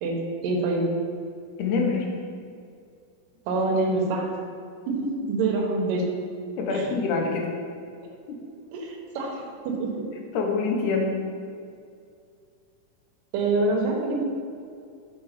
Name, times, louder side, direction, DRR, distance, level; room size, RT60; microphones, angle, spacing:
voice 1, 0.4-0.9 3.5-4.3 4.9-6.1 6.7-6.9 8.7-10.1 13.3-14.2, right 3 dB, 80° right, 0 dB, 2.5 m, -26 dB
voice 2, 1.6-2.1 6.6-7.5 8.3-8.5 10.3-11.1, left 4 dB, 75° left, 1 dB, 2.2 m, -25 dB
7.0 x 3.8 x 4.8 m, 2.3 s
omnidirectional pair, 3.8 m